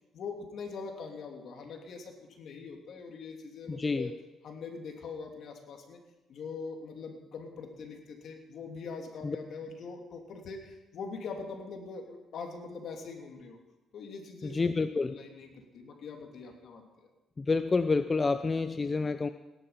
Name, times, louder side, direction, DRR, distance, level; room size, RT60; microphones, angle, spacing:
voice 1, 0.1-4.1 4.4-6.0 6.3-13.6 13.9-14.6 14.9-17.1, left 4 dB, 65° left, 3 dB, 3.1 m, -42 dB
voice 2, 3.7-4.1 9.2-9.4 14.4-15.1 17.4-19.3, left 4 dB, 30° left, 10 dB, 0.7 m, -28 dB
17.0 x 11.5 x 5.9 m, 1.0 s
cardioid pair, 90°, 0 cm